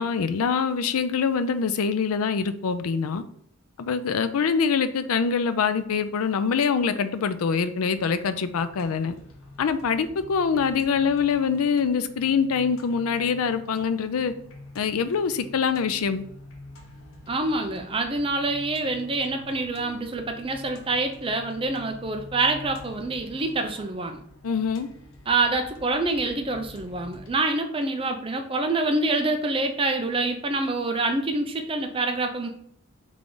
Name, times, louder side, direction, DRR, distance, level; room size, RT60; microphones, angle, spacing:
voice 1, 0.0-3.2 3.8-9.2 9.6-14.3 14.8-16.2 24.4-24.9, left 6 dB, 90° left, 11 dB, 0.4 m, -24 dB
sound 1, 7.9-27.3, left 1 dB, 65° left, 0.8 m, -47 dB
voice 2, 17.3-24.2 25.3-32.5, right 2 dB, 25° right, 5 dB, 0.4 m, -26 dB
3.7 x 3.3 x 3.8 m, 0.66 s
head